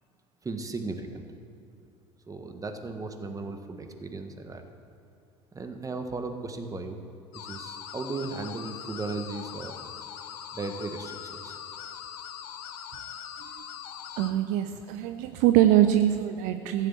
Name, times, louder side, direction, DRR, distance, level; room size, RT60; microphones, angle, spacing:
voice 1, 0.4-1.2 2.3-4.6 5.5-7.0 7.3-9.8 10.5-11.6, right 3 dB, 25° right, 6 dB, 1.6 m, -36 dB
sound 1, 7.3-14.3, left 8 dB, 70° left, 1.1 m, -41 dB
voice 2, 14.1-16.9, right 12 dB, 60° right, 8 dB, 0.7 m, -23 dB
14.5 x 7.5 x 7.7 m, 2.7 s
hypercardioid pair, 65°, 14 cm